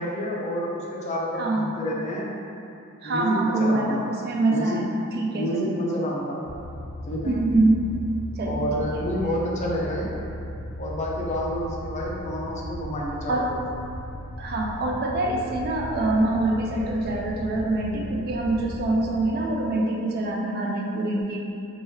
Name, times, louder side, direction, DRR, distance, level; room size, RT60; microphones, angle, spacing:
voice 1, 0.0-2.3 3.0-4.0 4.4-4.8 5.3-6.4 7.1-7.4 8.4-10.1 10.8-13.6, equal, 35° left, -3 dB, 0.4 m, -29 dB
voice 2, 1.4-1.7 3.0-5.8 7.3-7.8 8.4-8.7 8.9-9.0 13.3-13.5 14.4-21.4, right 2 dB, 45° right, 0 dB, 0.3 m, -25 dB
sound 1, 6.4-19.3, left 1 dB, 65° right, 0.8 m, -37 dB
2.9 x 2.3 x 3.0 m, 2.6 s
head